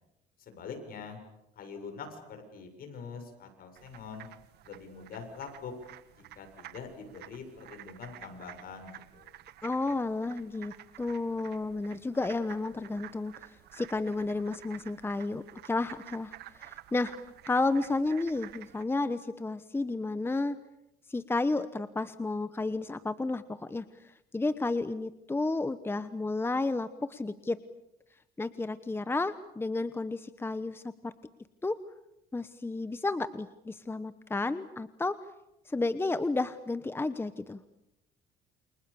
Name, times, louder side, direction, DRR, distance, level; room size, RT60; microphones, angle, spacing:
voice 1, 0.4-1.2 1.6-4.3 4.7-5.7 6.2-9.3, left 5 dB, 60° left, 6 dB, 7.4 m, -44 dB
sound 1, 3.7-18.8, right 13 dB, 75° right, 1.7 m, -51 dB
voice 2, 9.6-17.1 17.5-20.6 21.1-23.8 24.3-27.6 28.4-31.1 31.6-31.8 32.3-35.2 35.7-37.6, left 3 dB, 15° left, 12 dB, 1.1 m, -32 dB
29.0 x 27.5 x 7.1 m, 0.88 s
cardioid pair, 110°, 17 cm